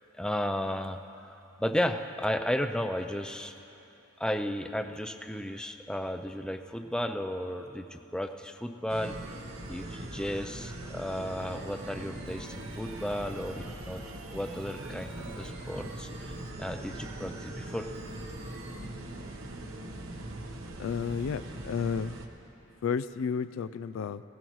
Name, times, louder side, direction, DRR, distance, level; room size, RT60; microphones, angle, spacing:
voice 1, 0.2-3.5 4.2-9.2 9.7-14.0 14.3-17.9, equal, 5° left, 6 dB, 0.4 m, -34 dB
sound 1, 8.9-18.9, right 2 dB, 30° right, 0.8 m, -49 dB
sound 2, 8.9-22.3, right 1 dB, 70° right, 1.1 m, -42 dB
voice 2, 20.8-22.2 22.8-24.2, left 6 dB, 75° left, 13 dB, 0.3 m, -32 dB
20.5 x 17.0 x 3.1 m, 3.0 s
head